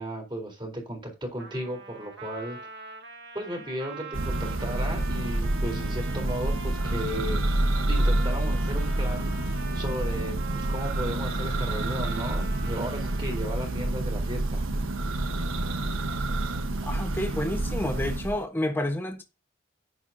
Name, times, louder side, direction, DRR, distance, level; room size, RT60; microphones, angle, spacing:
voice 1, 0.0-2.6 3.3-7.4 7.9-14.7, equal, 25° right, 3.8 m, -35 dB
Trumpet, 1.4-13.8, right 3 dB, 60° right, 2.0 m, -43 dB
Church bell, 4.1-18.4, right 1 dB, 85° right, 1.2 m, -28 dB
voice 2, 16.9-19.2, left 1 dB, 10° left, 1.1 m, -29 dB
10.5 x 9.3 x 2.7 m
head